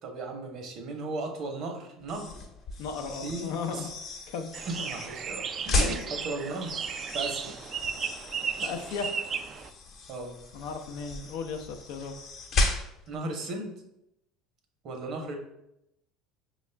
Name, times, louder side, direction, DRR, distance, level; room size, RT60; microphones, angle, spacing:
voice 1, 0.0-2.3 3.2-3.9 4.7-6.8 7.1-7.5 10.1-10.4 13.1-13.7 14.8-15.4, right 2 dB, 55° right, 3 dB, 0.9 m, -36 dB
sound 1, 2.0-13.2, left 2 dB, 55° left, 0.9 m, -35 dB
voice 2, 2.8-3.9 4.3-4.5 5.8-5.9 8.6-9.1 10.5-12.1, left 5 dB, 75° left, 5 dB, 0.5 m, -35 dB
sound 2, 4.5-9.7, right 6 dB, 40° right, 0.3 m, -35 dB
5.1 x 2.4 x 3.3 m, 0.84 s
hypercardioid pair, 80°, 0 cm